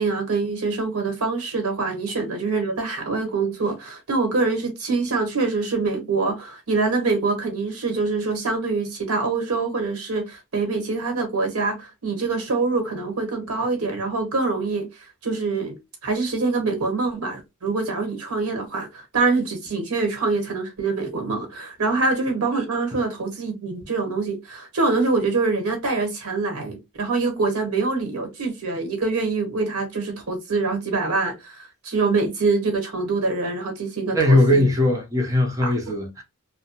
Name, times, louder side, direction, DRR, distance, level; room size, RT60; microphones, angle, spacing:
voice 1, 0.0-14.9 15.2-15.8 16.0-34.7 35.6-35.7, right 3 dB, 80° right, 1.0 m, -25 dB
voice 2, 34.1-36.2, left 1 dB, 15° right, 0.6 m, -19 dB
2.7 x 2.1 x 2.7 m
head